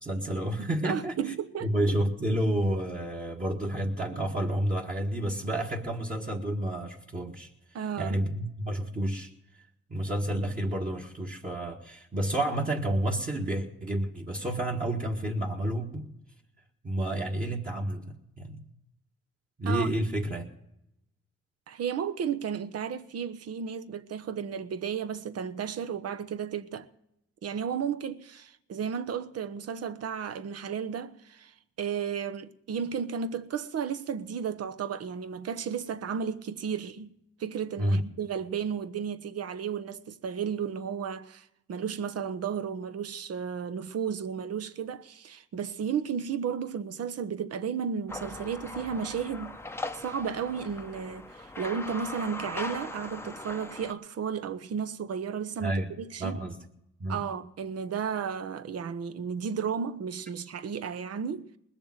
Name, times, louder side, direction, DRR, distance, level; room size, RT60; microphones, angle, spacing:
voice 1, 0.0-1.1 1.6-7.5 8.0-9.3 9.9-16.1 16.8-18.0 18.4-18.6 19.6-20.5 37.8-38.0 55.6-55.9 56.2-56.6 57.0-57.2, right 1 dB, 25° right, 1.7 m, -30 dB
voice 2, 0.8-1.7 7.7-8.2 19.7-20.0 21.7-26.9 27.4-49.6 49.9-56.4 57.1-61.5, right 7 dB, 55° right, 1.0 m, -33 dB
sound 1, 48.1-53.9, left 2 dB, 10° left, 0.8 m, -40 dB
20.5 x 7.0 x 7.5 m
cardioid pair, 90°, 30 cm